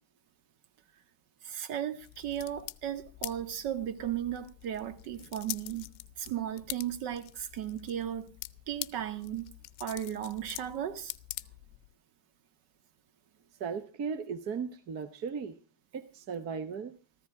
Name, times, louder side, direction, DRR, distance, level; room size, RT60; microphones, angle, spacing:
voice 1, 1.4-5.9 6.2-8.3 8.7-9.5 9.8-11.1, right 10 dB, 60° right, 1.7 m, -35 dB
sound 1, 2.0-11.9, left 20 dB, 55° left, 0.7 m, -45 dB
voice 2, 13.6-15.5 15.9-17.0, right 6 dB, 40° right, 1.0 m, -36 dB
14.5 x 13.5 x 4.8 m
cardioid pair, 150°, 39 cm